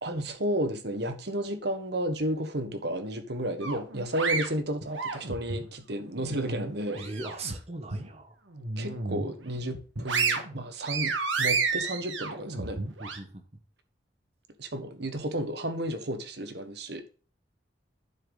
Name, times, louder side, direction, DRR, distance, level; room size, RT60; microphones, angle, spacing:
voice 1, 0.0-7.0 8.8-12.8 14.6-17.0, right 1 dB, 60° right, 1.4 m, -32 dB
sound 1, 3.6-5.6 6.1-7.5 7.9-8.1 8.5-9.3 9.7-13.2, right 4 dB, 90° right, 1.7 m, -31 dB
voice 2, 6.9-8.3 13.0-13.4, right 2 dB, 35° right, 1.4 m, -39 dB
11.0 x 6.6 x 4.1 m
head